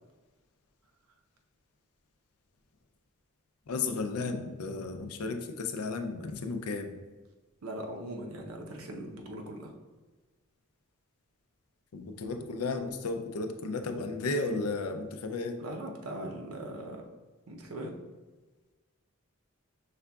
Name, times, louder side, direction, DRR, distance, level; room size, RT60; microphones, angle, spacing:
voice 1, 3.7-6.9 9.0-9.1 11.9-15.6, left 3 dB, 85° left, 7 dB, 0.5 m, -34 dB
voice 2, 7.6-9.7 15.6-17.1 17.5-17.9, right 1 dB, 80° right, 2 dB, 0.7 m, -40 dB
5.5 x 3.6 x 2.3 m, 1.3 s
head